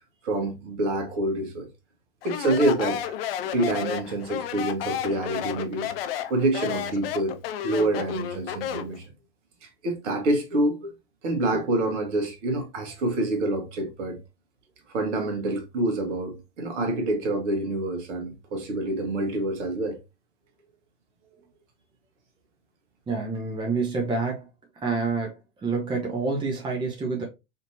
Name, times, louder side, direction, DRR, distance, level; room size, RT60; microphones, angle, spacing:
voice 1, 0.2-1.7 2.2-3.2 3.4-5.9 6.3-9.1 9.6-11.0 11.2-14.2 14.9-20.0, right 1 dB, 50° right, 1.5 m, -27 dB
Speech, 2.2-9.0, left 10 dB, 40° left, 0.5 m, -32 dB
voice 2, 23.1-24.5 24.8-25.3 25.6-27.2, right 4 dB, 10° right, 0.9 m, -27 dB
5.1 x 2.9 x 2.7 m
figure-of-eight pair, 95°, 45 cm